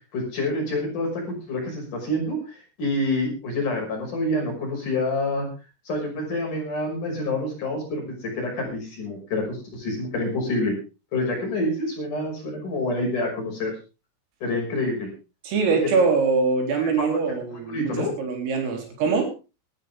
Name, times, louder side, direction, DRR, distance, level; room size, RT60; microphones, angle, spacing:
voice 1, 0.1-2.4 2.8-5.5 5.9-10.7 11.1-13.7 14.4-15.1 15.8-15.9 17.0-17.1 17.7-18.1, left 2 dB, 40° left, 1 dB, 7.1 m, -27 dB
voice 2, 15.4-19.3, right 4 dB, 80° right, 2 dB, 6.7 m, -23 dB
19.0 x 13.5 x 3.6 m, 0.31 s
omnidirectional pair, 5.9 m